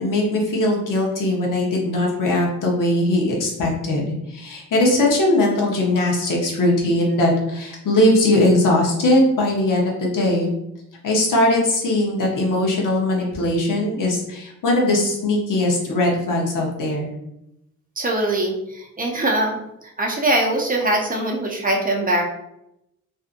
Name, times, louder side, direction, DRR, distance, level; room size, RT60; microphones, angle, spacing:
voice 1, 0.0-10.5 11.0-17.1, left 1 dB, 75° left, -2 dB, 0.9 m, -20 dB
voice 2, 18.0-19.6 20.0-22.2, right 1 dB, 25° right, 0 dB, 0.5 m, -22 dB
2.6 x 2.5 x 2.5 m, 0.83 s
cardioid pair, 85°, 32 cm